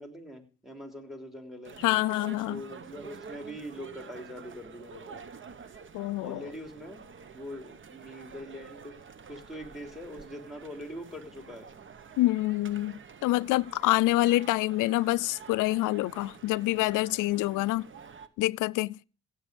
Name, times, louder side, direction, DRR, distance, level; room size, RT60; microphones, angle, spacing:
voice 1, 0.0-1.8 2.5-5.2 6.2-7.0 7.3-9.0 9.3-11.7 17.3-17.7, equal, ahead, 3.6 m, -43 dB
sound 1, 1.6-18.3, right 5 dB, 40° right, 1.2 m, -48 dB
voice 2, 1.8-2.6 5.9-6.5 12.2-17.9 18.4-19.0, left 18 dB, 90° left, 0.5 m, -26 dB
16.0 x 8.1 x 5.3 m
cardioid pair, 90°, 30 cm